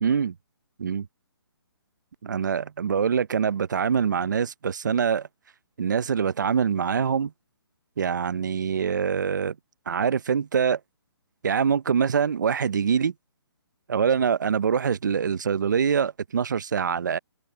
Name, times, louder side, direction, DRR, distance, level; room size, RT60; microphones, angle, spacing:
voice 1, 0.0-0.3 0.8-1.1 2.2-5.3 5.8-7.3 8.0-9.5 9.9-10.8 11.4-13.1 13.9-17.2, right 7 dB, 45° right, 0.5 m, -24 dB
hypercardioid pair, 175°, 14 cm